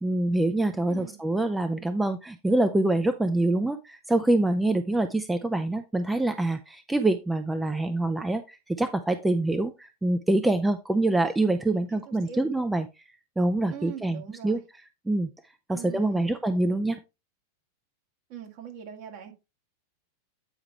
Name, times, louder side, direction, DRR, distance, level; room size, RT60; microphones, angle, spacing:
voice 1, 0.0-12.9 13.4-14.6 15.1-15.3 15.7-17.0, right 2 dB, 5° right, 0.5 m, -25 dB
voice 2, 0.9-1.2 11.9-12.5 13.7-14.6 15.7-16.3 18.3-19.3, right 9 dB, 45° right, 1.9 m, -42 dB
9.0 x 4.8 x 3.3 m
figure-of-eight pair, 90°, 0 cm